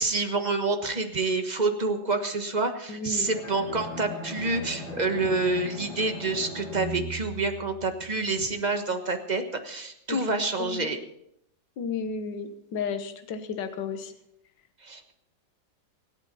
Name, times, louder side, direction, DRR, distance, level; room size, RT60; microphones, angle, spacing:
voice 1, 0.0-11.0 14.8-15.1, right 3 dB, 25° right, 6 dB, 1.2 m, -28 dB
voice 2, 2.9-3.3 10.1-10.9 11.8-14.1, left 5 dB, 65° left, 8 dB, 1.8 m, -33 dB
Bowed string instrument, 3.2-8.3, equal, 85° left, 7.1 m, -39 dB
25.5 x 8.9 x 4.1 m, 0.76 s
omnidirectional pair, 2.1 m